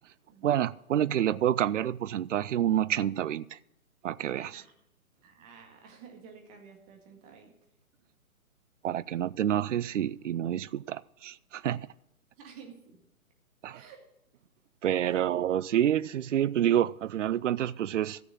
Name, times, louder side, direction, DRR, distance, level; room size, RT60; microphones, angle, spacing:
voice 1, 0.4-3.6 4.0-4.6 8.8-11.9 13.6-13.8 14.8-18.2, right 11 dB, 60° right, 0.5 m, -28 dB
voice 2, 4.3-4.7 5.2-7.5 12.4-13.0 13.7-14.0 15.0-15.2, right 6 dB, 25° right, 1.9 m, -51 dB
14.0 x 6.7 x 6.3 m
figure-of-eight pair, 135°, 43 cm